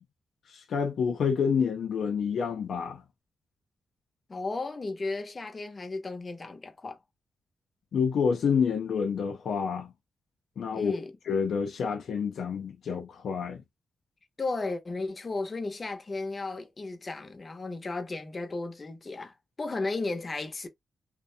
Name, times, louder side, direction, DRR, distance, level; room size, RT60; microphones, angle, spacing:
voice 1, 0.5-3.0 7.9-9.9 10.6-10.9 11.3-13.6, left 6 dB, 75° left, 0.4 m, -28 dB
voice 2, 4.3-7.0 10.7-11.1 14.4-20.7, left 3 dB, 35° left, 0.7 m, -34 dB
2.5 x 2.1 x 2.6 m
cardioid pair, 85°, 0 cm